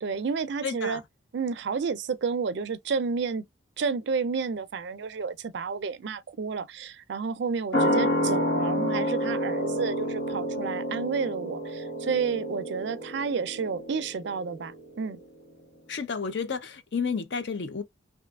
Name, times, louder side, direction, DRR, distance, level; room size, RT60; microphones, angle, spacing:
voice 1, 0.0-1.0 1.3-3.4 3.8-15.2, right 5 dB, 60° right, 0.4 m, -31 dB
voice 2, 0.6-1.0 15.9-17.8, left 5 dB, 60° left, 0.5 m, -31 dB
sound 1, 7.7-14.8 15.1-15.2, equal, 80° left, 1.3 m, -29 dB
2.7 x 2.3 x 2.3 m
head